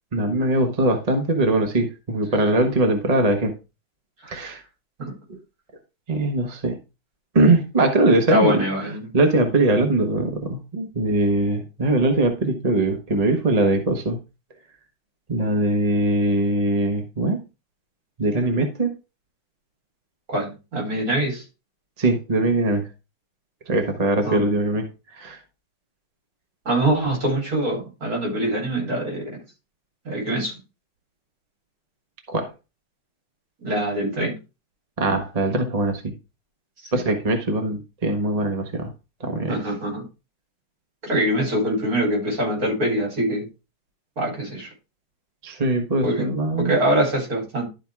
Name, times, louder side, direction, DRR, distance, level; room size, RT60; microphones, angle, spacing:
voice 1, 0.1-3.5 4.3-4.6 5.3-5.4 6.1-6.8 7.3-8.6 9.1-14.2 15.3-17.4 18.2-18.9 22.0-22.9 23.7-24.9 25.2-25.4 32.3-32.5 35.0-36.1 36.9-38.9 39.2-39.6 45.4-46.8, right 2 dB, 25° right, 4 dB, 1.0 m, -21 dB
voice 2, 8.3-9.1 20.3-21.4 24.2-24.4 26.7-29.3 30.0-30.6 33.6-34.3 39.5-40.0 41.0-43.5 44.2-44.7 46.0-46.3 46.6-47.7, right 1 dB, 60° right, -1 dB, 4.4 m, -24 dB
12.0 x 4.6 x 3.5 m, 0.28 s
omnidirectional pair, 1.8 m